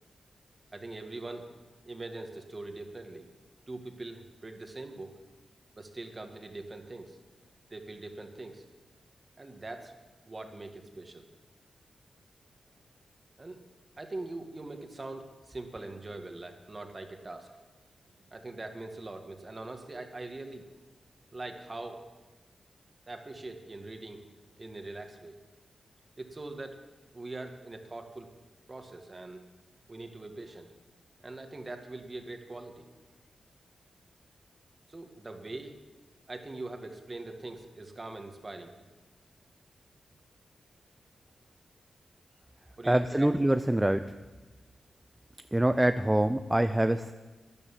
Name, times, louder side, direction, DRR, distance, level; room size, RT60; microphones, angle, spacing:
voice 1, 0.7-1.5 1.8-3.3 3.7-5.1 5.7-7.2 7.7-8.6 9.4-9.9 10.2-11.2 13.4-13.7 14.0-17.5 18.3-20.7 21.3-22.0 23.1-24.2 24.6-25.4 26.2-26.8 27.1-28.3 28.7-29.4 29.9-30.7 31.2-32.9 34.9-35.8 36.3-38.8 42.8-43.6, right 2 dB, 30° right, 5 dB, 1.8 m, -42 dB
voice 2, 42.9-44.0 45.5-47.1, right 1 dB, 10° right, 9 dB, 0.5 m, -25 dB
13.0 x 11.0 x 7.4 m, 1.2 s
wide cardioid pair, 90°, 0 cm